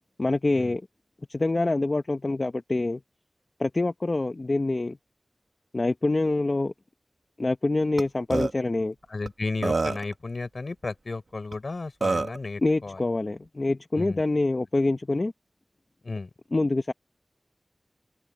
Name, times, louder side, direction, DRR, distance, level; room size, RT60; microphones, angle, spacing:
voice 1, 0.2-0.8 1.3-3.0 3.6-5.0 5.7-6.7 7.4-8.9 12.6-15.3 16.5-16.9, left 2 dB, 55° left, 1.1 m, -25 dB
Burping eructation, 8.0-8.1 8.3-8.5 9.3-9.4 9.6-10.1 11.5-11.6 12.0-12.4, right 3 dB, 80° right, 1.2 m, -26 dB
voice 2, 9.1-13.0 13.9-14.2 16.0-16.3, left 3 dB, 75° left, 5.7 m, -33 dB
open air
wide cardioid pair, 45°, 0 cm